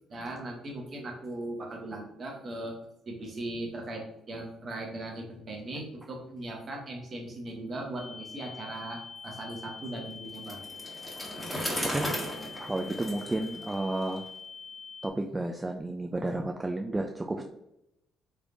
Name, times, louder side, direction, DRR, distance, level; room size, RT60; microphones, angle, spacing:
voice 1, 0.1-2.8 3.1-10.6, right 1 dB, 45° right, 0 dB, 1.1 m, -38 dB
sound 1, 8.0-15.1, left 5 dB, 30° left, 1.3 m, -45 dB
Bicycle, 10.3-14.2, equal, 5° left, 1.3 m, -36 dB
voice 2, 11.8-12.1 12.6-14.3 15.0-17.4, right 2 dB, 20° right, 2 dB, 0.3 m, -32 dB
3.4 x 3.1 x 2.5 m, 0.83 s
hypercardioid pair, 55°, 0 cm